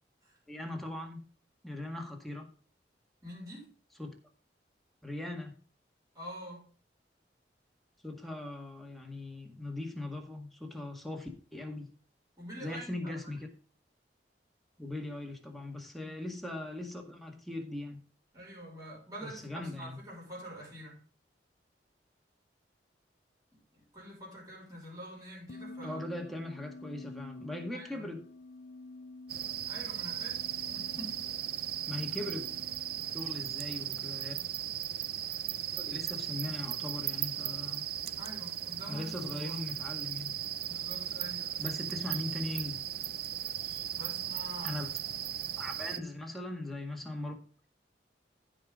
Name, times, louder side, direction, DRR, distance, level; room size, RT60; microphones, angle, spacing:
voice 1, 0.5-1.2 1.6-2.5 4.0-4.1 5.0-5.6 8.0-11.9 12.6-13.5 14.8-18.0 19.2-20.0 25.8-28.2 31.9-32.4 33.1-34.4 35.7-37.9 38.9-40.3 41.6-42.8 44.6-44.9 45.6-47.3, left 1 dB, ahead, 1.8 m, -39 dB
voice 2, 3.2-3.7 6.1-6.6 12.4-13.3 16.0-16.2 18.3-21.0 23.7-26.0 27.7-28.1 29.7-30.4 30.7-31.3 38.2-39.6 40.7-41.9 43.9-44.8, equal, 20° right, 5.6 m, -46 dB
sound 1, 25.5-34.1, left 2 dB, 65° left, 0.6 m, -50 dB
sound 2, 29.3-46.0, right 11 dB, 60° right, 0.6 m, -37 dB
15.5 x 5.2 x 3.8 m
head